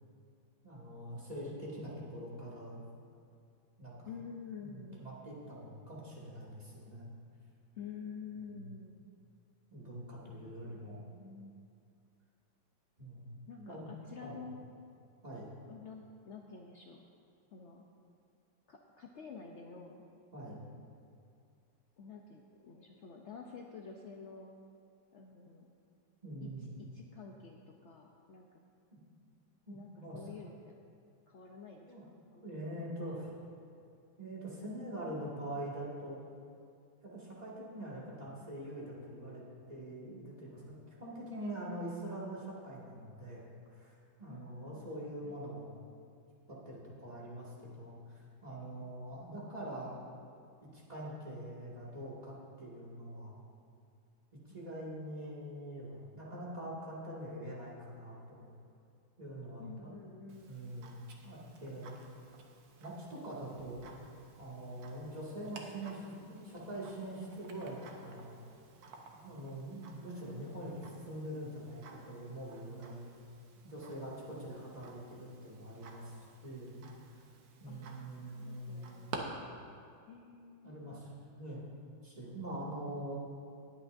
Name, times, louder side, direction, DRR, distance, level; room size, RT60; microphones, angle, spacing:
voice 1, 0.6-2.8 3.8-4.1 4.6-7.1 8.5-8.6 9.7-11.0 13.0-13.9 14.2-14.4 15.2-15.5 20.3-20.6 26.2-26.8 28.9-29.0 29.7-30.2 31.9-32.0 32.4-33.3 34.2-36.2 37.0-40.7 41.0-45.8 46.5-50.0 50.7-53.4 54.5-58.5 59.2-59.9 60.5-62.0 62.8-63.9 64.4-68.4 69.2-73.1 73.6-77.2 77.6-79.2 80.6-81.7 82.0-83.2, right 1 dB, 20° right, -7 dB, 2.1 m, -44 dB
voice 2, 4.1-5.1 7.8-9.0 10.4-11.6 13.5-14.7 15.7-17.0 17.5-17.8 18.7-20.0 22.0-24.5 25.1-25.7 26.4-26.5 26.9-28.5 29.7-30.7 31.3-33.0 44.3-44.9 45.2-45.4 54.5-54.9 59.6-60.6 77.7-79.2 80.1-81.0, left 5 dB, 75° left, 1 dB, 0.6 m, -50 dB
Tick-tock, 60.3-79.2, right 5 dB, 70° right, 1.6 m, -54 dB
19.5 x 8.7 x 2.6 m, 2.5 s
omnidirectional pair, 2.1 m